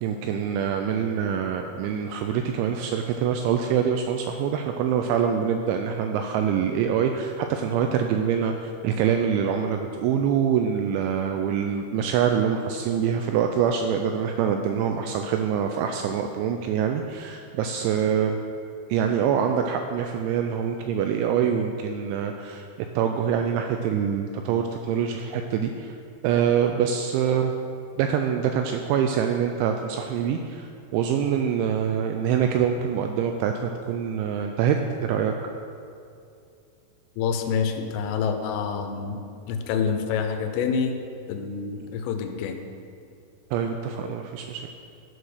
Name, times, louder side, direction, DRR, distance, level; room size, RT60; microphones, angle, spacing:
voice 1, 0.0-18.4 18.9-22.6 23.0-25.9 26.2-27.5 28.0-35.3 43.5-44.7, right 8 dB, 85° right, 5 dB, 2.7 m, -25 dB
voice 2, 37.2-39.2 39.5-41.0 41.3-42.6, left 6 dB, 85° left, 6 dB, 3.3 m, -27 dB
12.0 x 5.0 x 6.3 m, 2.4 s
omnidirectional pair, 5.7 m